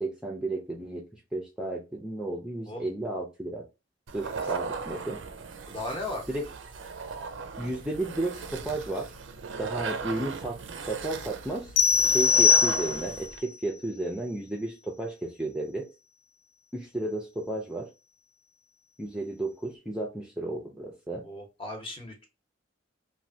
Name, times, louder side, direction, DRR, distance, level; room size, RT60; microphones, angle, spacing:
voice 1, 0.0-3.7 4.1-5.2 6.3-6.5 7.6-9.1 9.6-11.7 12.0-15.9 16.7-17.9 19.0-21.2, right 2 dB, 5° right, -1 dB, 0.4 m, -33 dB
sound 1, 4.1-13.4, right 4 dB, 65° right, 0.4 m, -38 dB
voice 2, 5.7-6.2 21.2-22.3, left 2 dB, 25° left, 2 dB, 0.8 m, -36 dB
sound 2, 11.8-13.3, left 6 dB, 60° left, 0.3 m, -21 dB
3.0 x 2.2 x 2.7 m, 0.27 s
head